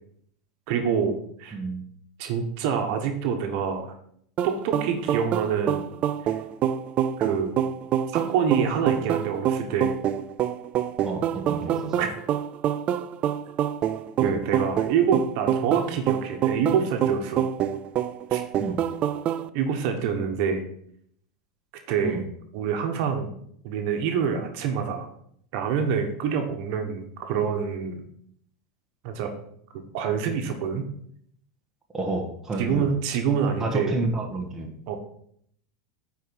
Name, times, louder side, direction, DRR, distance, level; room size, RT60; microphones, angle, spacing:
voice 1, 0.7-1.6 2.2-3.9 4.4-5.8 7.2-7.5 8.1-9.9 11.7-12.1 14.2-17.4 18.3-18.4 19.5-20.6 21.9-22.2 22.5-23.3 23.6-25.1 25.5-28.0 29.0-29.3 29.9-30.9 32.6-33.9 34.9-35.0, right 7 dB, 55° right, 4 dB, 1.4 m, -26 dB
voice 2, 1.5-1.8 11.0-11.9 14.2-14.3 18.6-18.8 22.0-22.2 31.9-32.9 33.6-34.7, right 2 dB, 10° right, -1 dB, 1.3 m, -30 dB
sound 1, 4.4-19.5, right 10 dB, 35° right, 0.4 m, -26 dB
9.3 x 4.7 x 4.7 m, 0.66 s
supercardioid pair, 140°, 4 cm